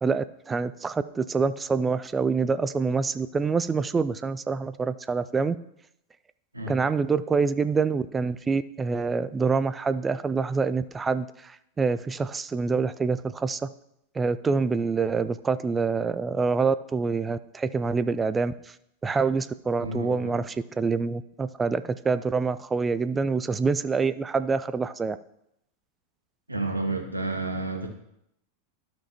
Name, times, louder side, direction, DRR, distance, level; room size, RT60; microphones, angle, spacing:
voice 1, 0.0-5.6 6.7-13.7 14.1-18.8 19.0-25.2, right 4 dB, 15° right, 14 dB, 0.3 m, -26 dB
voice 2, 19.8-20.4 26.5-27.9, right 2 dB, 85° right, 3 dB, 1.2 m, -30 dB
12.0 x 5.9 x 2.9 m, 0.78 s
figure-of-eight pair, 90°, 0 cm